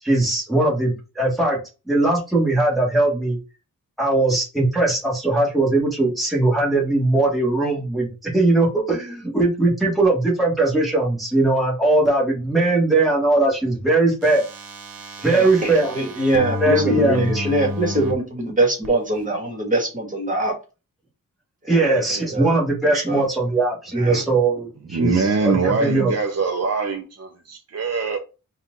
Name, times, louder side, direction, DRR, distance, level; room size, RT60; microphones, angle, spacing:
voice 1, 0.0-1.6 1.9-3.4 4.0-14.4 15.2-16.0 16.6-17.5 21.7-26.1, right 2 dB, ahead, 1.5 m, -20 dB
sound 1, 14.2-18.1 18.8-18.9, left 1 dB, 80° right, 1.1 m, -31 dB
voice 2, 15.2-20.5 21.6-23.2 23.9-24.2, right 2 dB, 25° right, 1.5 m, -24 dB
voice 3, 24.9-28.2, right 4 dB, 50° right, 0.6 m, -23 dB
4.3 x 2.4 x 3.8 m
wide cardioid pair, 125°, 34 cm